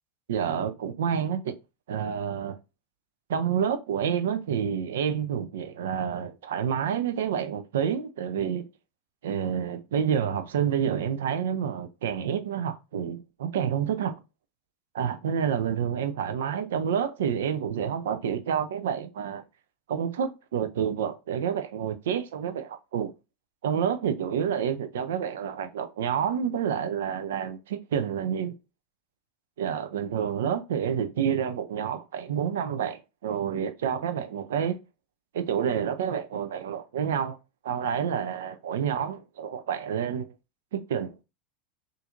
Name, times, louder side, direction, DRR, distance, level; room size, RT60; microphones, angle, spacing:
voice 1, 0.3-1.5 1.9-2.6 3.3-8.7 9.2-14.2 14.9-19.4 19.9-23.1 23.6-28.6 29.6-34.8 35.3-37.4 37.6-40.3 40.7-41.1, right 8 dB, 75° right, 0.5 m, -28 dB
4.1 x 2.6 x 2.5 m
hypercardioid pair, 90°, 0 cm